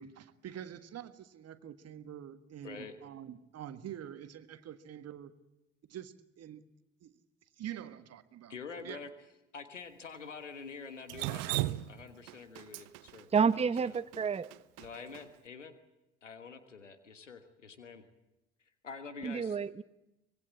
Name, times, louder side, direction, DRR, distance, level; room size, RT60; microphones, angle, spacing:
voice 1, 0.0-5.3 5.9-6.6 7.0-7.1 7.6-9.0, right 10 dB, 45° right, 1.7 m, -46 dB
voice 2, 2.6-3.0 8.5-9.1 9.5-13.3 13.5-13.9 14.8-15.7 16.2-18.0 18.8-19.6, left 5 dB, 85° left, 1.5 m, -46 dB
Drip, 11.1-15.2, right 18 dB, 60° right, 0.9 m, -37 dB
voice 3, 13.3-14.5 19.2-19.8, right 6 dB, 15° right, 0.8 m, -29 dB
25.0 x 20.5 x 8.5 m
figure-of-eight pair, 55°, 36 cm